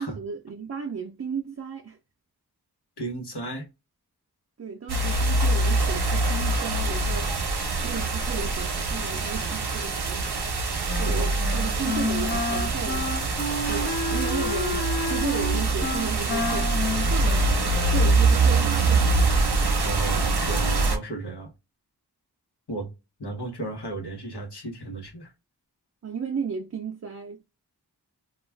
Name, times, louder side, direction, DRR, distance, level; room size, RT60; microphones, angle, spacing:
voice 1, 0.0-2.0 4.6-7.3 7.8-10.3 11.0-13.3 13.7-16.7 17.1-17.5 17.9-19.1 26.0-27.4, right 6 dB, 40° right, 0.5 m, -34 dB
voice 2, 3.0-3.7 11.1-11.3 13.6-13.8 19.8-21.5 22.7-22.9 23.2-25.3, right 2 dB, 90° left, 1.0 m, -34 dB
sound 1, 4.9-21.0, right 3 dB, 80° right, 0.7 m, -24 dB
Wind instrument woodwind instrument, 10.9-18.3, left 3 dB, 35° left, 0.4 m, -31 dB
2.3 x 2.2 x 3.2 m
wide cardioid pair, 50°, 39 cm